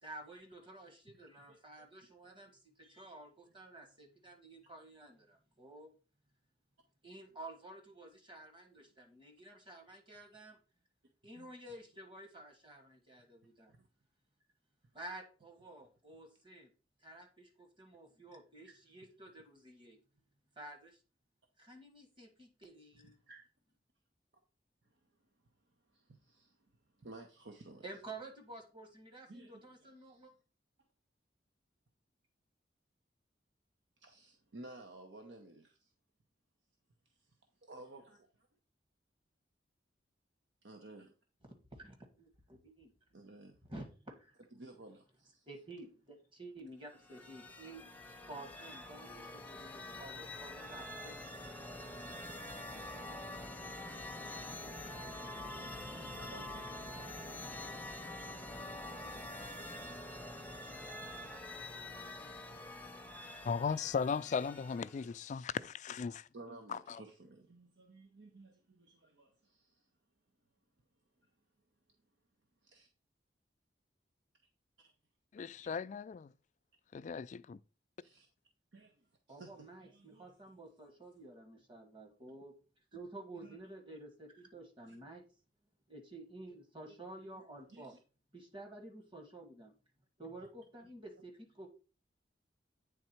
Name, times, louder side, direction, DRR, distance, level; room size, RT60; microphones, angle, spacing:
voice 1, 0.0-2.5 2.8-5.9 7.0-10.6 11.2-13.7 14.9-16.7 17.0-20.0 20.6-21.0 21.6-23.1 27.8-30.3 41.7-42.3 42.6-42.9 43.7-44.4 45.5-47.9 48.3-51.5 79.3-82.6 82.9-85.2 85.9-87.9 88.3-89.7 90.2-91.7, right 2 dB, 30° right, 1.5 m, -51 dB
voice 2, 1.2-1.9 2.2-2.4 11.4-11.5 13.8-13.9 18.6-18.7 23.3-23.5 24.9-25.0 25.9-26.7 27.0-27.9 29.3-30.3 34.0-35.9 37.2-37.3 37.6-38.2 40.6-41.1 43.1-43.6 44.5-45.5 52.3-52.4 55.3-55.8 56.1-56.8 58.2-58.3 61.0-61.8 62.4-63.2 66.3-69.9 71.2-71.3 72.6-72.9 74.8-74.9 78.0-78.3 78.7-80.3 83.4-83.6 84.8-85.0 87.7-88.0, right 2 dB, 75° right, 0.9 m, -55 dB
sound 1, 46.9-65.1, left 1 dB, 10° left, 0.7 m, -46 dB
voice 3, 63.5-66.3 66.7-67.0 75.3-76.3 76.9-77.6, left 6 dB, 40° left, 0.3 m, -37 dB
8.7 x 3.6 x 4.4 m
head